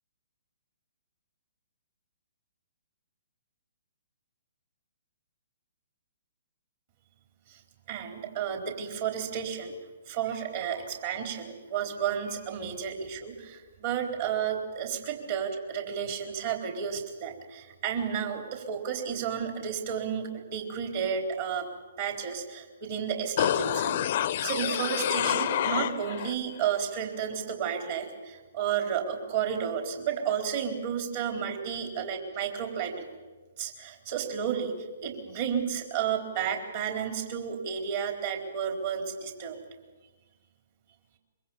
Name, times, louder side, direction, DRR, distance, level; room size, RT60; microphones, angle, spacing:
voice 1, 7.9-9.7 10.1-21.7 22.0-33.0 33.6-34.7 35.0-39.6, right 8 dB, 45° right, 3 dB, 4.0 m, -32 dB
sound 1, 23.4-26.4 26.7-26.8, left 11 dB, 45° left, 0.8 m, -28 dB
25.0 x 23.0 x 7.3 m, 1.2 s
figure-of-eight pair, 125°, 0 cm